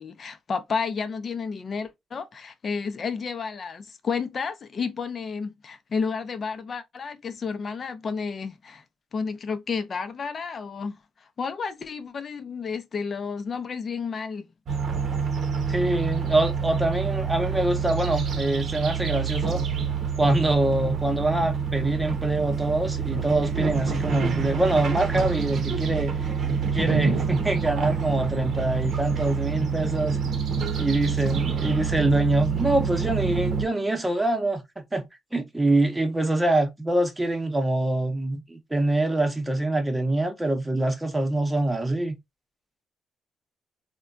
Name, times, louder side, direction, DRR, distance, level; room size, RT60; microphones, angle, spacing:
voice 1, 0.0-8.8 9.1-14.5, left 5 dB, 45° left, 0.6 m, -31 dB
sound 1, 14.7-33.6, right 6 dB, 55° right, 0.7 m, -27 dB
voice 2, 15.7-19.6 20.2-26.1 26.7-30.2 30.8-35.1 35.3-42.1, right 2 dB, 10° right, 0.9 m, -24 dB
3.5 x 2.2 x 2.4 m
cardioid pair, 90°, 0 cm